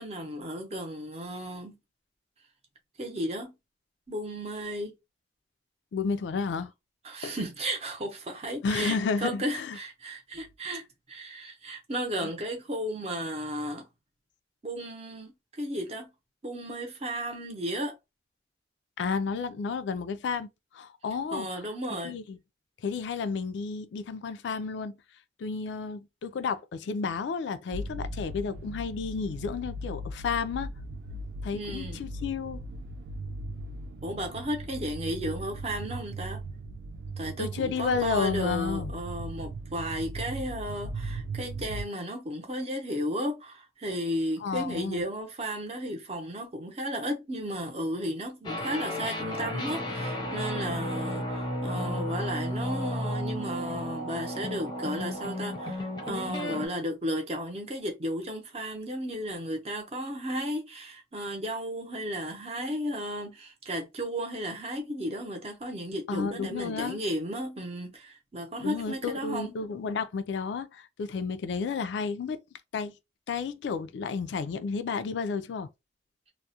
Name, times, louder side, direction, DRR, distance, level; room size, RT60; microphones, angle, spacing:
voice 1, 0.0-1.8 3.0-3.5 4.1-4.9 7.0-13.9 14.6-16.1 16.4-18.0 21.3-22.2 31.5-32.0 34.0-36.4 37.2-69.5, equal, 35° right, 0.6 m, -34 dB
voice 2, 5.9-6.7 7.2-7.4 8.6-9.8 12.2-12.3 19.0-21.5 22.0-22.4 22.8-24.9 25.4-30.7 31.4-32.6 37.4-38.9 44.4-45.0 66.1-67.0 68.6-72.4 72.7-72.9 73.3-75.7, left 5 dB, 80° left, 0.3 m, -32 dB
sound 1, 27.7-41.8, right 2 dB, 75° right, 0.3 m, -38 dB
sound 2, 48.4-56.7, left 1 dB, 25° left, 0.5 m, -33 dB
2.3 x 2.1 x 2.7 m
head